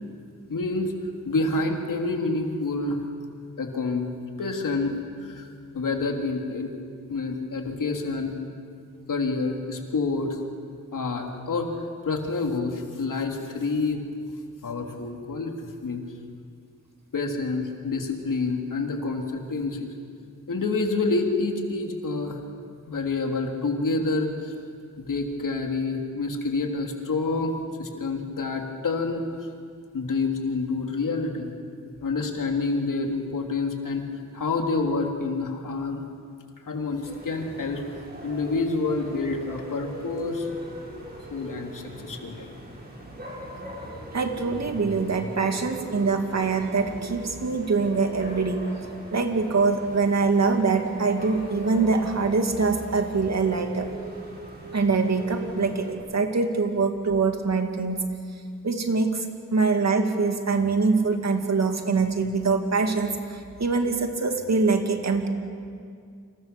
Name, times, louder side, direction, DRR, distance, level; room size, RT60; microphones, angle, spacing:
voice 1, 0.5-0.9 1.2-3.0 3.6-4.1 4.4-5.5 5.7-6.7 7.1-8.4 9.1-10.4 10.9-11.7 12.0-14.0 14.6-15.5 15.8-16.0 17.1-19.9 20.5-22.4 22.9-24.5 25.0-27.5 27.8-29.3 29.9-31.5 32.0-34.0 34.3-36.0 36.7-37.8 38.2-40.5 41.3-42.5, left 3 dB, 85° left, 2 dB, 3.2 m, -28 dB
sound 1, 37.0-55.9, right 1 dB, 30° right, 6.7 m, -40 dB
voice 2, 44.1-48.6 49.1-53.9 54.7-58.0 58.6-59.1 59.5-63.1 63.6-65.3, right 4 dB, 55° right, 4 dB, 2.6 m, -24 dB
29.0 x 26.5 x 6.9 m, 2.3 s
wide cardioid pair, 110°, 31 cm